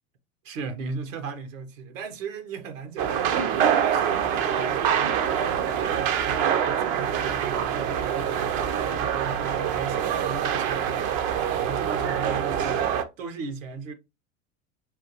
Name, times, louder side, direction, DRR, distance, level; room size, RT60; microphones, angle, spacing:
voice 1, 0.4-3.5 3.8-11.1 11.5-13.9, right 5 dB, 70° right, 1.0 m, -36 dB
sound 1, 3.0-13.0, right 8 dB, 45° right, 0.7 m, -25 dB
5.5 x 2.5 x 2.9 m
hypercardioid pair, 85°, 40 cm